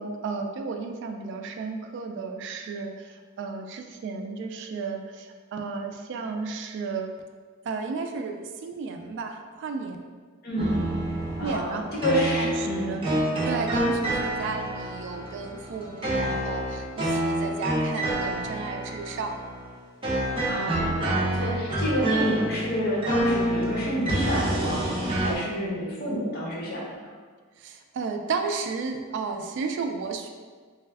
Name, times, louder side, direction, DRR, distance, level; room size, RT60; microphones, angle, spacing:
voice 1, 0.0-7.2 7.6-10.1 11.4-11.8 12.4-13.0 13.4-19.4 27.6-30.3, right 4 dB, 60° right, 5 dB, 0.3 m, -33 dB
voice 2, 10.4-10.9 11.4-13.1 20.4-26.9, equal, 50° left, -4 dB, 0.8 m, -29 dB
sound 1, 10.6-25.3, right 1 dB, 25° right, 0.6 m, -28 dB
3.2 x 2.2 x 3.4 m, 1.5 s
head